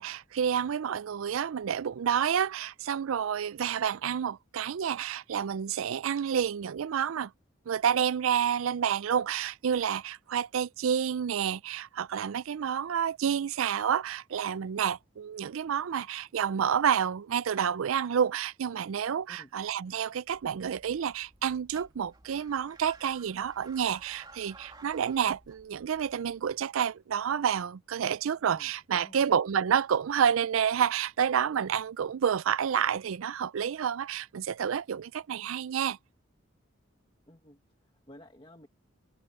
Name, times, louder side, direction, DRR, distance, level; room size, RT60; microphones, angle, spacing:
voice 1, 0.0-7.3 7.7-36.0, right 8 dB, 80° right, 0.4 m, -29 dB
sound 1, 20.3-26.5, right 3 dB, 20° right, 2.5 m, -55 dB
voice 2, 28.5-29.3 37.3-38.7, left 1 dB, 25° left, 1.7 m, -54 dB
head